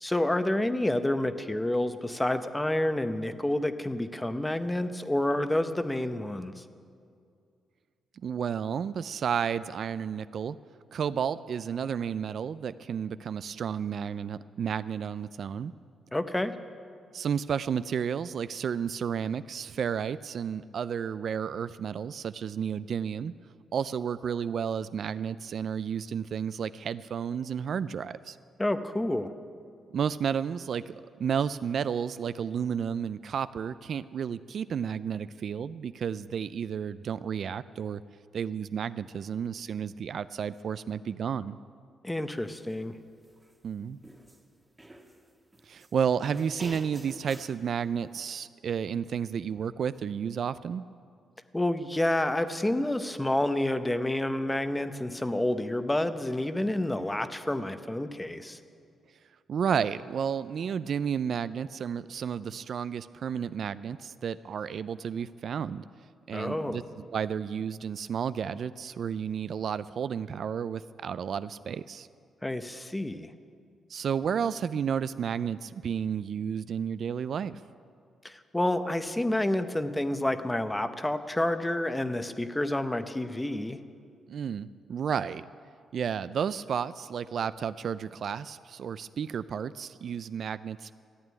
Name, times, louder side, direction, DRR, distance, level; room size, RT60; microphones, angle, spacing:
voice 1, 0.0-6.6 16.1-16.5 28.6-29.3 42.0-42.9 51.5-58.6 66.3-66.8 72.4-73.3 78.2-83.8, left 1 dB, 10° left, 10 dB, 0.7 m, -29 dB
voice 2, 8.2-10.6 10.9-15.7 17.1-23.3 23.7-28.4 29.9-38.0 38.3-41.6 43.6-44.0 45.6-50.8 59.5-65.8 66.3-72.1 73.9-77.6 84.3-85.4 85.9-90.9, right 7 dB, 55° right, 15 dB, 0.3 m, -32 dB
sound 1, 42.5-42.7 43.2-44.4 44.8-45.9 46.2-47.6, right 1 dB, 10° right, 1.3 m, -48 dB
14.0 x 9.0 x 9.4 m, 2.3 s
cardioid pair, 120°, 0 cm